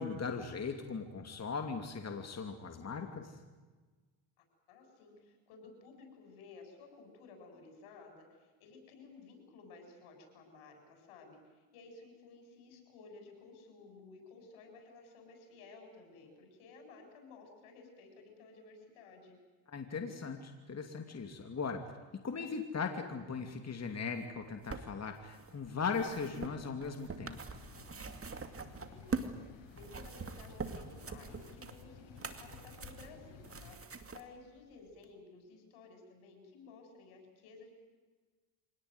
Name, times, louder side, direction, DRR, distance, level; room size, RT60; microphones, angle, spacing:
voice 1, 0.0-3.3 19.7-21.8 22.1-27.4, left 5 dB, 30° left, 5 dB, 2.7 m, -39 dB
voice 2, 4.7-19.4 28.9-37.7, left 4 dB, 85° left, 4 dB, 7.8 m, -55 dB
sound 1, 24.2-29.4 29.7-34.2 35.0-35.1, right 4 dB, 25° right, 2.5 m, -44 dB
sound 2, 27.5-33.8, left 5 dB, 60° left, 6.0 m, -55 dB
25.5 x 18.5 x 9.5 m, 1.3 s
cardioid pair, 90°, 49 cm